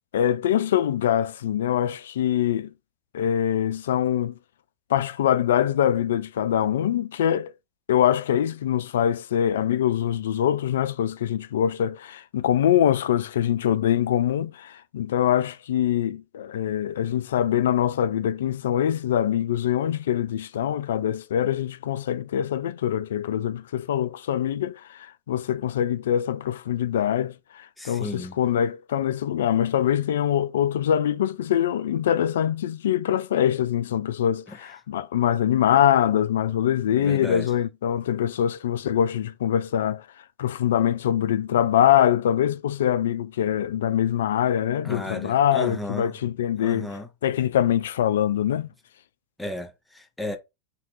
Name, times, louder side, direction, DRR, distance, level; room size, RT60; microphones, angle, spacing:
voice 1, 0.1-2.7 3.1-4.3 4.9-7.5 7.9-40.1 40.4-46.9 47.2-48.7, left 10 dB, 60° left, 0.3 m, -23 dB
voice 2, 27.8-28.4 34.5-34.7 37.0-37.5 44.8-46.1 46.6-47.1 49.4-50.4, left 1 dB, 5° left, 0.8 m, -34 dB
3.0 x 2.8 x 4.5 m
figure-of-eight pair, 90°, 0 cm